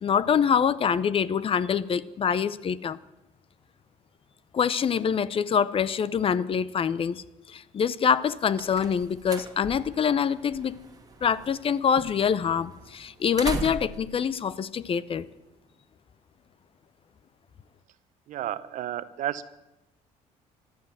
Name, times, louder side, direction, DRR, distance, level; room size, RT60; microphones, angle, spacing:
voice 1, 0.0-3.0 4.5-7.2 7.5-10.8 11.2-15.3, left 7 dB, 40° left, 18 dB, 0.7 m, -25 dB
sound 1, 8.1-15.5, right 4 dB, 25° right, 1.8 m, -40 dB
voice 2, 18.3-19.5, right 12 dB, 65° right, 14 dB, 0.9 m, -32 dB
15.0 x 12.0 x 7.4 m, 0.93 s
cardioid pair, 85°, 14 cm